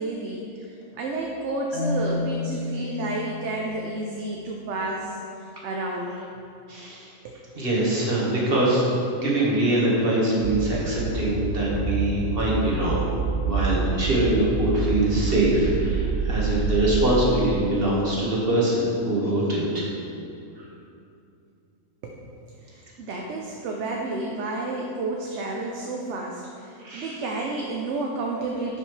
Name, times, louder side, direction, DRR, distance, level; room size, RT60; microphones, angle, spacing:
voice 1, 0.0-6.1 7.2-7.4 22.0-22.3 22.6-28.8, right 2 dB, 65° right, 0 dB, 0.9 m, -31 dB
Marimba xylophone, 1.7-4.7, left 3 dB, 65° left, 1.3 m, -31 dB
voice 2, 6.7-7.1 7.6-13.1 13.4-19.9 20.6-20.7 26.8-27.2, right 1 dB, 45° right, -5 dB, 1.7 m, -23 dB
sound 1, 10.4-17.1, right 4 dB, 85° right, 1.0 m, -27 dB
10.0 x 5.5 x 3.2 m, 2.6 s
omnidirectional pair, 1.4 m